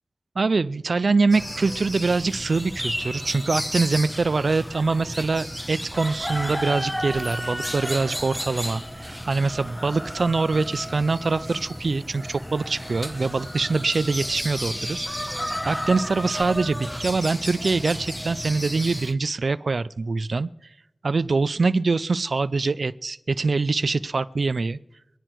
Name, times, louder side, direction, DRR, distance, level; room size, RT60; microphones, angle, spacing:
voice 1, 0.4-15.1 15.4-20.7 21.0-24.8, right 3 dB, 75° right, 13 dB, 0.4 m, -24 dB
sound 1, 1.3-19.1, equal, 10° left, 1.4 m, -32 dB
23.0 x 10.0 x 4.6 m, 0.87 s
cardioid pair, 45°, 0 cm